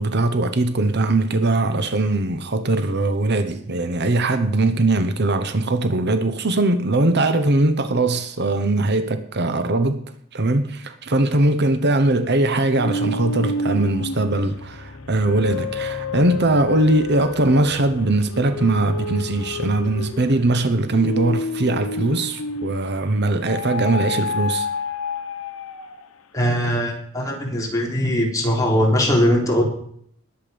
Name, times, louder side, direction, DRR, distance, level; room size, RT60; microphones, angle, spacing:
voice 1, 0.0-10.0 10.3-24.7, right 2 dB, 55° right, 1.1 m, -20 dB
sound 1, 12.7-22.9 23.5-26.2, left 3 dB, 90° left, 1.2 m, -30 dB
voice 2, 26.3-29.6, equal, 15° left, 3.7 m, -20 dB
20.0 x 8.2 x 5.2 m
head